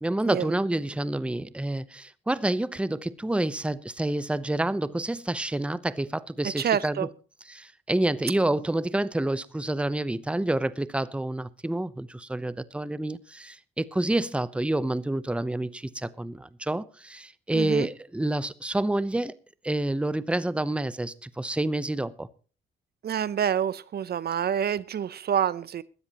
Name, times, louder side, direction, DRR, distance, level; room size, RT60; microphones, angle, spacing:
voice 1, 0.0-7.1 7.5-19.3 19.6-22.3, right 1 dB, 5° right, 0.8 m, -28 dB
voice 2, 6.6-7.1 17.5-17.9 23.0-25.8, right 9 dB, 55° right, 0.7 m, -27 dB
20.5 x 13.0 x 3.0 m
cardioid pair, 90°, 20 cm